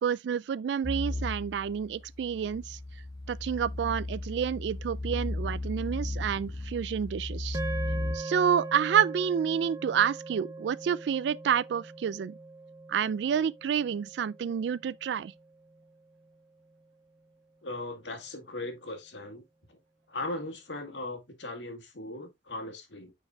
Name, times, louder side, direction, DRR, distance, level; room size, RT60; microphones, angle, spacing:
voice 1, 0.0-2.8 3.3-7.6 8.1-12.4 12.9-15.3, right 8 dB, 70° right, 0.3 m, -29 dB
sound 1, 0.8-8.2, left 2 dB, 20° left, 1.2 m, -35 dB
sound 2, 7.5-15.9, right 2 dB, 20° right, 0.8 m, -41 dB
voice 2, 17.6-19.4 19.7-19.8 20.1-23.1, left 2 dB, 85° left, 1.9 m, -38 dB
9.8 x 4.6 x 2.3 m
head